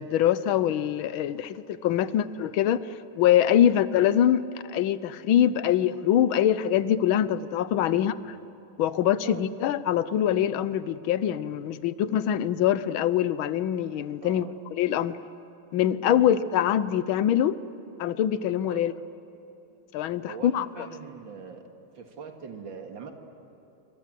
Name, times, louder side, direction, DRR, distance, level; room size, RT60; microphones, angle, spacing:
voice 1, 0.0-2.8 3.2-4.4 4.7-8.1 8.8-14.4 14.7-15.2 15.7-17.6 18.0-18.9 19.9-20.7, left 10 dB, 80° left, 15 dB, 1.6 m, -24 dB
voice 2, 14.2-14.5 16.1-16.3 18.7-18.9 20.3-21.6 21.9-23.1, right 6 dB, 65° right, 4 dB, 2.6 m, -42 dB
26.5 x 24.5 x 7.6 m, 3.0 s
omnidirectional pair, 2.2 m